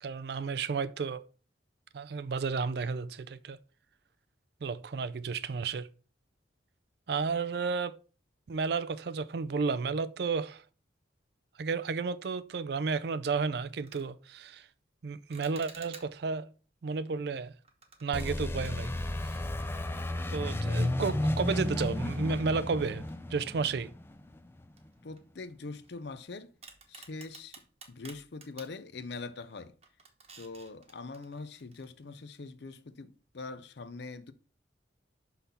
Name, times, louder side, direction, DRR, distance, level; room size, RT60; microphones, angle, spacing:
voice 1, 0.0-1.2 1.9-3.6 4.6-5.9 7.1-8.0 8.5-10.6 11.6-14.7 15.0-16.5 16.8-17.5 18.0-18.9 20.3-23.9, right 5 dB, 55° right, 0.4 m, -32 dB
sound 1, 13.7-14.1 15.3-16.3 17.6-20.0 20.3-20.4 21.2-21.3 23.1-23.7 24.1-24.2 24.7-26.2 26.6-28.8 29.3-29.5 29.8-31.9, right 5 dB, 35° right, 1.0 m, -54 dB
sound 2, 18.1-24.7, left 1 dB, 10° left, 0.4 m, -33 dB
voice 2, 25.0-26.5 26.9-27.6 27.9-29.7 30.4-34.3, left 3 dB, 60° left, 0.6 m, -43 dB
5.8 x 5.6 x 4.1 m
head